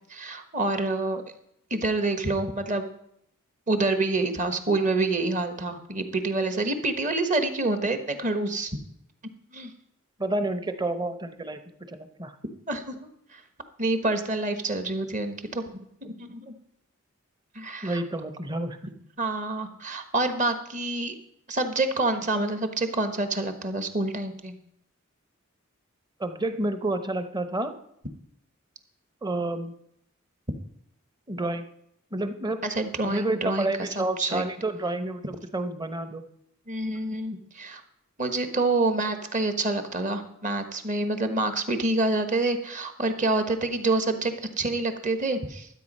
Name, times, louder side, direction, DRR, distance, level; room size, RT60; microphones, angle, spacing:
voice 1, 0.1-1.2 1.7-2.9 3.7-8.7 9.5-9.7 12.7-13.4 13.8-16.5 17.5-18.0 19.2-21.1 21.5-24.5 32.6-34.4 36.7-37.8 38.2-45.7, right 2 dB, 35° right, 8 dB, 1.2 m, -27 dB
voice 2, 10.2-11.6 11.9-12.3 17.8-18.9 26.2-27.7 29.2-29.7 31.3-31.7 32.1-32.6 33.1-36.2, right 2 dB, 20° right, 9 dB, 0.8 m, -29 dB
13.0 x 8.3 x 5.4 m, 0.73 s
head